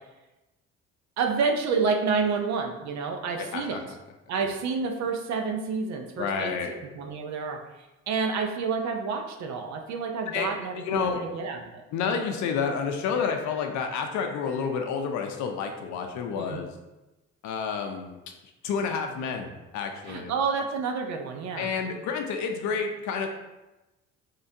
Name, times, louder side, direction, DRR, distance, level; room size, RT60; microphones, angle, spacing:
voice 1, 1.2-3.8 4.3-7.6 8.1-11.8 16.3-16.6 20.1-21.7, right 5 dB, 65° right, 4 dB, 0.6 m, -29 dB
voice 2, 3.4-4.0 6.2-6.7 10.3-11.2 11.9-16.7 17.4-18.2 18.6-20.3 21.6-23.3, left 6 dB, 70° left, 4 dB, 0.6 m, -30 dB
3.7 x 3.2 x 2.7 m, 1.0 s
supercardioid pair, 65°, 31 cm